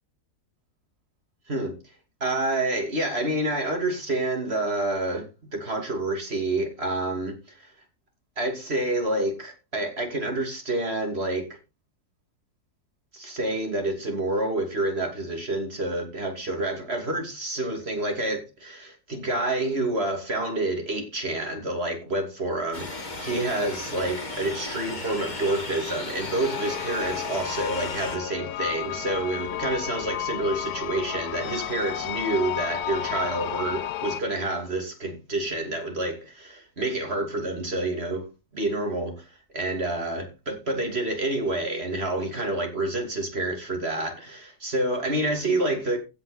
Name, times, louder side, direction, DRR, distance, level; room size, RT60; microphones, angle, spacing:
voice 1, 2.2-7.7 8.4-11.5 13.1-38.3 38.5-46.0, right 2 dB, 35° right, 2.9 m, -28 dB
sound 1, 22.7-28.2, left 2 dB, 25° left, 1.6 m, -35 dB
sound 2, 26.2-34.2, left 11 dB, 70° left, 1.1 m, -32 dB
15.5 x 5.5 x 4.2 m
omnidirectional pair, 1.9 m